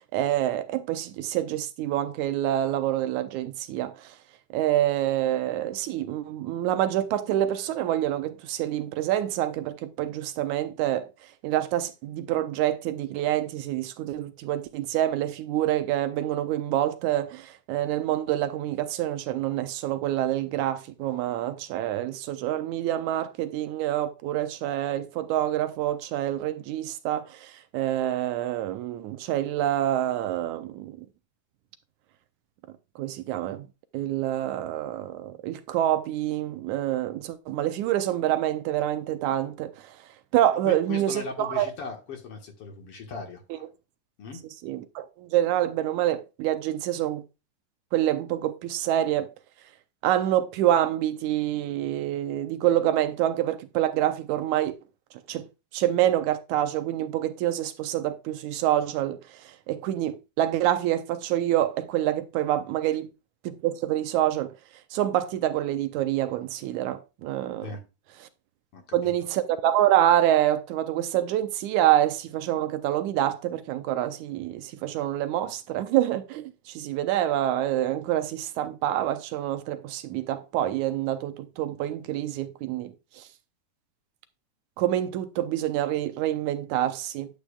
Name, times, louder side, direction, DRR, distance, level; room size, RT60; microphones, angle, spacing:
voice 1, 0.0-4.1 4.5-11.1 11.4-31.1 33.0-33.7 33.9-40.0 40.3-41.7 43.5-43.6 44.6-47.2 47.9-49.3 50.0-54.8 55.3-55.5 55.7-63.1 63.4-64.5 64.9-67.7 68.9-83.3 84.8-87.3, right 12 dB, 80° right, 2.0 m, -27 dB
voice 2, 40.7-43.4 44.2-44.4 67.6-67.8 68.7-69.1, left 4 dB, 55° left, 2.2 m, -38 dB
10.0 x 7.9 x 2.3 m
omnidirectional pair, 3.5 m